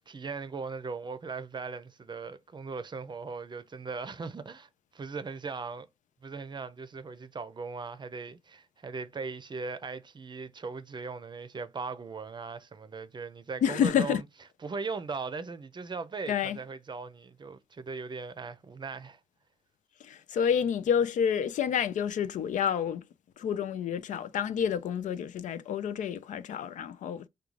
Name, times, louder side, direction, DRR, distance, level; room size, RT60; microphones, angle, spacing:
voice 1, 0.1-5.9 6.2-14.2 14.6-19.2, right 4 dB, 35° right, 0.5 m, -39 dB
voice 2, 13.6-14.2 16.3-16.6 20.0-23.0 23.4-27.3, left 8 dB, 85° left, 0.4 m, -29 dB
3.6 x 2.3 x 3.1 m
cardioid pair, 80°, 13 cm